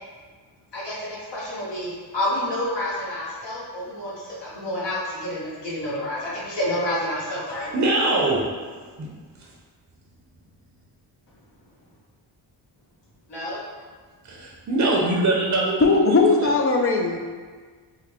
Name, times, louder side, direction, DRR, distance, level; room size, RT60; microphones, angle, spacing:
voice 1, 0.7-7.7 13.3-13.6, left 1 dB, 60° left, -8 dB, 1.4 m, -29 dB
voice 2, 7.5-8.5 9.0-9.1 9.4-9.5 14.2-16.1 16.4-16.5, right 2 dB, 35° right, -3 dB, 0.7 m, -23 dB
voice 3, 15.8-17.2, left 3 dB, 30° left, 2 dB, 0.5 m, -19 dB
3.6 x 2.1 x 3.5 m, 1.5 s
cardioid pair, 60°, 48 cm